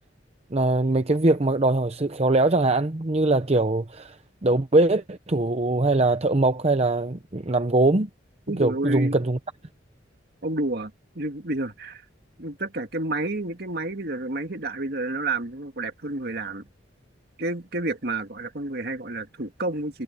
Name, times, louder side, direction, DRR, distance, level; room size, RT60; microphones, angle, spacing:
voice 1, 0.5-4.2 4.4-8.1 8.6-9.4, right 2 dB, 35° right, 0.8 m, -22 dB
voice 2, 8.5-9.2 10.4-12.0 12.4-16.7 17.4-20.0, right 2 dB, 55° right, 2.0 m, -30 dB
head